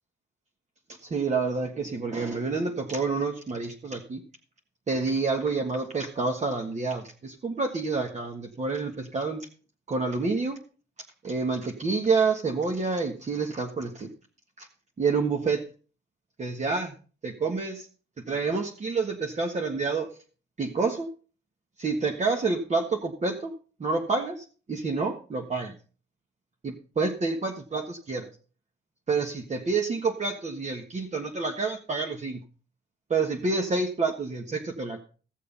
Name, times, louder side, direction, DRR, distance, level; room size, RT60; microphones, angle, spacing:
voice 1, 1.0-4.2 4.9-9.5 9.9-10.6 11.2-14.1 14.6-14.7 15.0-15.6 16.4-17.0 17.2-17.9 18.3-20.1 20.6-21.1 21.8-23.5 23.8-25.7 27.0-28.3 29.1-32.4 33.1-35.0, right 4 dB, 35° right, 2 dB, 1.6 m, -28 dB
15.5 x 6.8 x 5.4 m, 0.39 s
cardioid pair, 90°, 20 cm